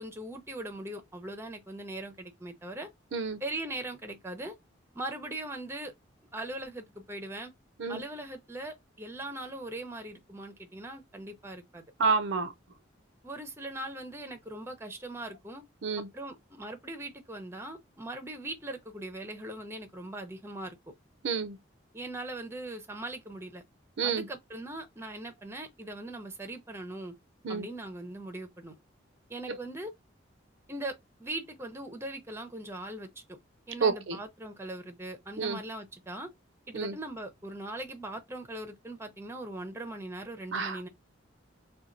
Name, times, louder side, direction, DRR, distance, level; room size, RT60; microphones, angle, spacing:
voice 1, 0.0-2.9 3.4-4.5 4.9-5.9 6.3-7.5 7.9-11.8 13.2-15.6 16.1-20.8 21.9-23.6 24.0-27.1 27.5-28.7 29.3-29.9 30.7-33.4 33.7-36.3 36.7-40.9, right 1 dB, 15° right, 0.6 m, -40 dB
voice 2, 3.1-3.4 7.8-8.0 12.0-12.5 15.8-16.1 21.2-21.6 24.0-24.3 27.4-27.7 29.5-29.6 33.8-34.2 35.4-35.6 36.7-37.0 40.5-40.9, right 5 dB, 70° right, 0.5 m, -29 dB
4.1 x 2.2 x 2.5 m
head